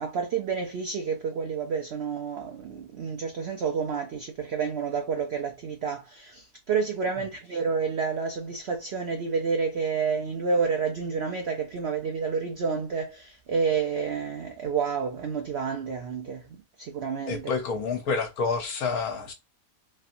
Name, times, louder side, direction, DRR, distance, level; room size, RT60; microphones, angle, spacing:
voice 1, 0.0-17.5, right 5 dB, 75° right, 0.6 m, -29 dB
voice 2, 17.3-19.3, left 4 dB, 70° left, 1.3 m, -28 dB
3.2 x 2.7 x 2.5 m
omnidirectional pair, 1.7 m